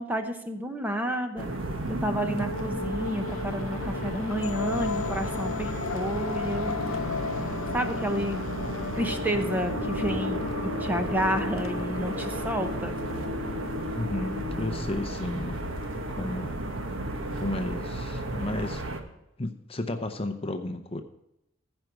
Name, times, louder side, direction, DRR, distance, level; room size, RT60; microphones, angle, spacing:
voice 1, 0.0-1.5 1.9-6.8 7.7-8.4 9.0-12.9, equal, 10° right, 5 dB, 0.8 m, -30 dB
sound 1, 1.4-19.0, right 1 dB, 80° right, 1.3 m, -33 dB
sound 2, 2.2-15.2, left 4 dB, 90° left, 0.5 m, -35 dB
voice 2, 14.0-15.6 16.1-16.6 17.4-18.8 19.4-21.0, left 1 dB, 30° left, 6 dB, 0.7 m, -33 dB
15.5 x 5.3 x 6.1 m, 0.85 s
head